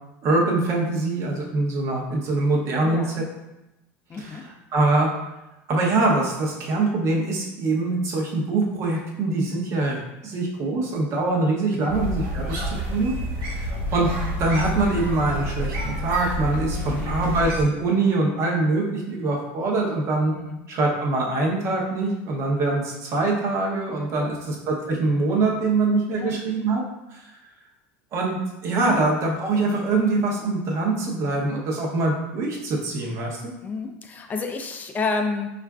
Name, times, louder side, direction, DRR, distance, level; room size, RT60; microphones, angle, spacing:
voice 1, 0.2-3.2 4.2-5.1 5.7-13.1 13.4-14.1 14.4-20.3 20.7-26.8 27.1-27.2 28.1-33.5, right 2 dB, 45° right, -2 dB, 0.8 m, -24 dB
voice 2, 2.8-3.2 4.1-4.4 11.7-12.0 12.4-12.6 16.7-17.3 20.3-20.6 24.1-24.5 26.1-26.3 28.7-29.0 31.4-31.5 33.6-35.5, left 4 dB, 25° left, 4 dB, 0.4 m, -31 dB
sound 1, 11.9-17.6, equal, 70° right, 1.0 m, -29 dB
4.3 x 2.4 x 2.3 m, 0.95 s
supercardioid pair, 125°, 7 cm